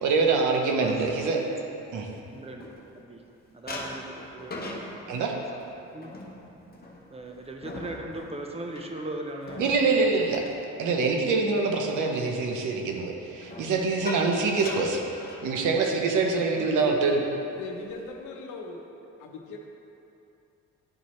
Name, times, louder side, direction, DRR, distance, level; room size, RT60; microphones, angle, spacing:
voice 1, 0.0-1.4 1.9-2.1 5.1-5.3 9.6-10.4 10.8-15.0 15.4-17.2, right 4 dB, 80° right, 2 dB, 0.9 m, -25 dB
voice 2, 1.7-3.2 3.5-5.3 5.8-6.1 7.1-10.3, right 2 dB, 20° right, 2 dB, 0.8 m, -39 dB
sound 1, 1.8-3.2 3.7-11.5 11.8-12.2 13.3-15.9 16.2-16.4 16.8-17.0 17.5-18.2, left 2 dB, 30° left, 1.0 m, -41 dB
voice 3, 16.6-17.0 17.6-18.9 19.2-19.6, left 3 dB, 85° left, 1 dB, 0.9 m, -38 dB
11.0 x 4.2 x 3.2 m, 2.8 s
cardioid pair, 90°, 30 cm